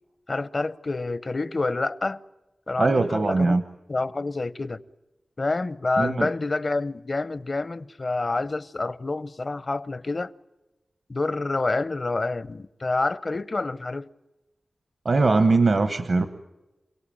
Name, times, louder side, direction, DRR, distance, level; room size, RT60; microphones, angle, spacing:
voice 1, 0.3-2.2 2.7-3.6 3.9-4.8 5.4-10.3 11.1-14.1, left 3 dB, 45° left, 0.7 m, -28 dB
voice 2, 2.8-3.6 6.0-6.3 15.0-16.3, right 3 dB, 65° right, 1.0 m, -21 dB
28.0 x 18.0 x 9.0 m
wide cardioid pair, 60°, 0 cm